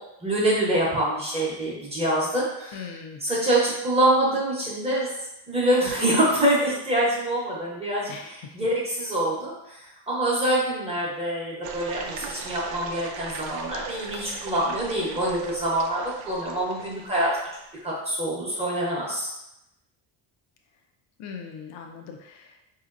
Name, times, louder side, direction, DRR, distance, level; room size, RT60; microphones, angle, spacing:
voice 1, 0.2-2.9 3.2-5.1 5.5-17.3 17.8-19.3, right 1 dB, 15° right, -5 dB, 0.8 m, -25 dB
voice 2, 2.7-3.2 8.1-8.6 21.2-22.7, left 6 dB, 80° left, 3 dB, 0.7 m, -40 dB
sound 1, 11.6-17.7, right 5 dB, 80° right, 0.6 m, -40 dB
4.9 x 2.8 x 2.5 m, 0.89 s
cardioid pair, 160°, 47 cm